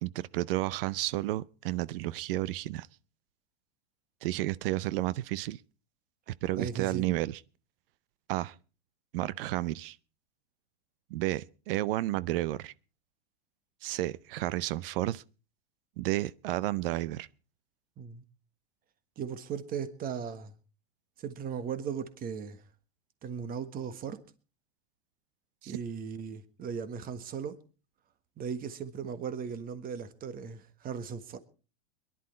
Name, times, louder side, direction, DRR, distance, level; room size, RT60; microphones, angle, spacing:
voice 1, 0.0-2.9 4.2-5.6 6.4-7.4 8.3-8.5 9.1-10.0 11.1-12.7 13.8-15.2 16.0-17.3 25.6-25.8, right 16 dB, 55° right, 0.7 m, -31 dB
voice 2, 6.6-7.1 18.0-18.2 19.2-20.5 21.2-22.6 23.2-24.2 25.7-27.6 28.4-31.4, right 7 dB, 25° right, 1.5 m, -37 dB
22.0 x 11.0 x 4.3 m
supercardioid pair, 140°, 33 cm